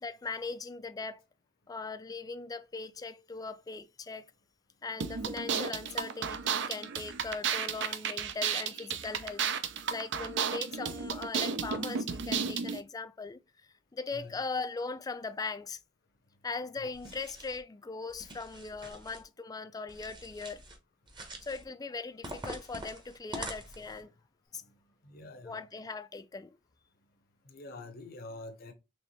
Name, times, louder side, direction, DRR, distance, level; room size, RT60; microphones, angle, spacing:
voice 1, 0.0-1.2 1.7-4.3 4.8-9.4 9.9-13.4 13.9-15.8 16.4-20.6 21.4-24.1 24.5-24.6 25.4-26.6, left 4 dB, 20° left, 0.3 m, -39 dB
sound 1, 5.0-12.8, right 6 dB, 65° right, 0.5 m, -33 dB
sound 2, 16.9-17.6 18.1-19.2 19.9-20.8 21.1-21.6 22.2-24.0, right 1 dB, 25° right, 0.9 m, -44 dB
voice 2, 25.0-25.6 27.5-28.7, left 2 dB, 50° left, 0.7 m, -46 dB
4.2 x 3.1 x 3.0 m
head